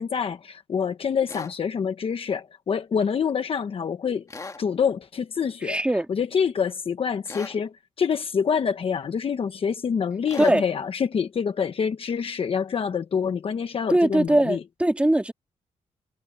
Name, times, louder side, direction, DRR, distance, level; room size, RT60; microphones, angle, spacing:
voice 1, 0.0-4.2 4.6-5.8 6.1-14.6, left 6 dB, 50° left, 1.0 m, -26 dB
sound 1, 1.3-1.5 4.3-4.6 7.3-7.6 10.3-10.6, left 3 dB, 25° left, 2.0 m, -38 dB
voice 2, 5.6-6.1 10.4-10.6 13.9-15.3, right 1 dB, 10° right, 2.7 m, -21 dB
cardioid pair, 115°, 12 cm